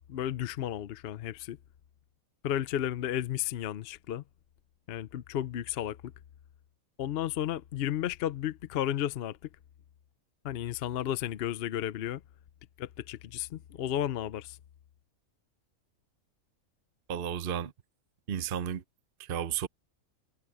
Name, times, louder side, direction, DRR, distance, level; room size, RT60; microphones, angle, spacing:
voice 1, 0.1-1.6 2.4-4.2 4.9-6.0 7.0-9.4 10.4-12.2 12.8-14.6, left 11 dB, 55° left, 0.8 m, -33 dB
voice 2, 17.1-17.7 18.3-18.8 19.2-19.7, right 9 dB, 45° right, 0.9 m, -33 dB
omnidirectional pair, 1.5 m